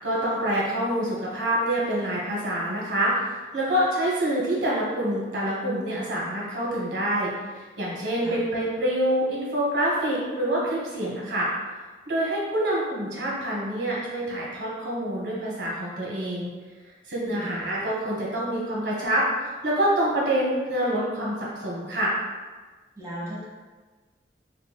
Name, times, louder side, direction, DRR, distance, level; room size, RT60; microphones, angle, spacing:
voice 1, 0.0-11.5 12.1-16.5 17.1-22.1, right 1 dB, 85° right, -5 dB, 1.2 m, -26 dB
voice 2, 23.0-23.5, equal, 20° right, -6 dB, 0.8 m, -36 dB
5.4 x 2.5 x 2.2 m, 1.3 s
head